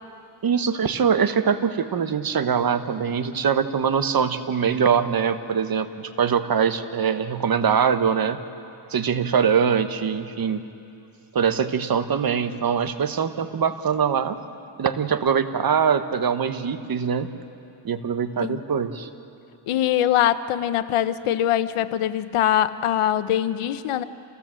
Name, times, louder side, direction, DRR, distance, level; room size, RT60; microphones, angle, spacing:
voice 1, 0.4-8.4 8.9-10.6 11.3-14.4 14.8-17.3 17.8-19.1, right 7 dB, 45° right, 10 dB, 1.2 m, -23 dB
voice 2, 19.7-24.0, left 11 dB, 85° left, 13 dB, 0.9 m, -22 dB
28.0 x 17.0 x 7.6 m, 2.7 s
cardioid pair, 105°, 49 cm